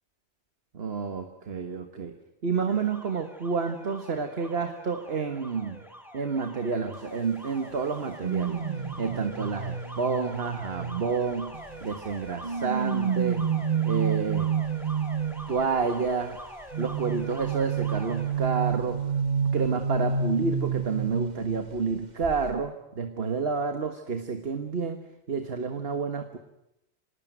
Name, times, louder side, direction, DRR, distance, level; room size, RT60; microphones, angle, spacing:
voice 1, 0.7-2.2 2.4-5.8 6.1-8.6 9.0-13.5 13.8-14.5 15.5-16.4 16.8-19.1 19.5-25.0 25.3-26.4, right 5 dB, 60° right, 7 dB, 1.7 m, -29 dB
Alarm, 2.7-18.3, equal, ahead, 4.0 m, -44 dB
sound 1, 8.2-11.8 12.4-15.7 16.7-21.9 22.2-22.5, right 7 dB, 40° right, 1.5 m, -29 dB
25.5 x 19.5 x 9.4 m, 0.89 s
omnidirectional pair, 1.2 m